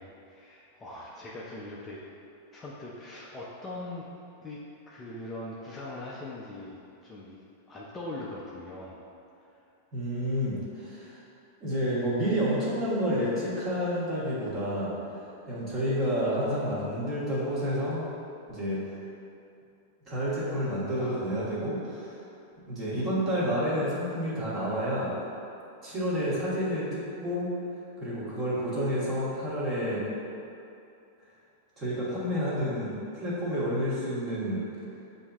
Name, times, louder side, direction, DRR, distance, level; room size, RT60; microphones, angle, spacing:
voice 1, 0.0-2.0 2.5-4.1 4.4-9.0, left 2 dB, 15° left, -5 dB, 0.4 m, -41 dB
voice 2, 9.9-11.2 11.6-15.2 15.5-18.1 18.5-18.8 20.1-22.2 22.7-25.1 25.8-27.5 28.0-30.1 31.8-34.6, equal, 25° right, -9 dB, 1.4 m, -29 dB
7.3 x 2.6 x 2.3 m, 2.7 s
supercardioid pair, 150°, 0 cm